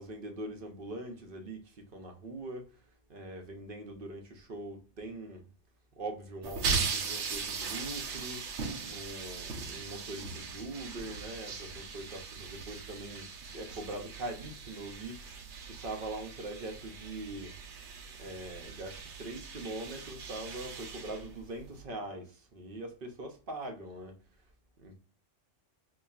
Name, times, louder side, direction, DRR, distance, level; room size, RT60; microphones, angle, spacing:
voice 1, 0.0-2.8 3.1-5.4 6.0-17.5 18.2-24.1 24.8-25.0, right 2 dB, 55° right, 0.8 m, -42 dB
sound 1, 6.4-21.8, right 5 dB, 75° right, 1.0 m, -39 dB
5.5 x 2.3 x 2.3 m
omnidirectional pair, 1.3 m